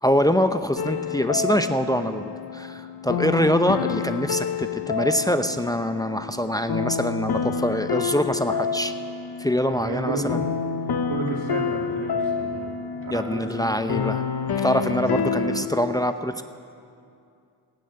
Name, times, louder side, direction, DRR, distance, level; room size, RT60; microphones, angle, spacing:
voice 1, 0.0-8.9 9.4-10.4 13.1-14.2 14.6-16.4, equal, 10° left, 8 dB, 0.7 m, -24 dB
sound 1, 0.8-15.7, left 6 dB, 65° left, 1.0 m, -28 dB
voice 2, 9.7-10.4 11.1-12.7 12.9-13.7 15.3-15.4, right 3 dB, 85° right, -1 dB, 2.8 m, -32 dB
15.5 x 9.2 x 9.8 m, 2.4 s
cardioid pair, 55°, 41 cm